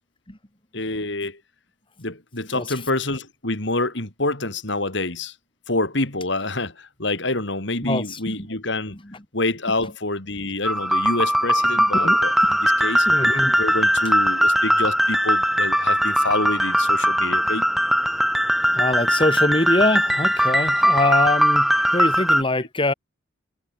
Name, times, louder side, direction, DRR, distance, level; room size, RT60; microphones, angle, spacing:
voice 1, 0.7-1.4 2.0-5.3 5.7-9.0 9.3-13.1 13.6-17.7 22.5-22.6, left 2 dB, 65° left, 3.8 m, -27 dB
voice 2, 7.8-8.5 12.0-12.2 12.5-12.6 13.1-13.6 18.7-22.9, left 2 dB, 25° left, 3.4 m, -23 dB
sound 1, 10.6-22.4, equal, ahead, 2.1 m, -20 dB
head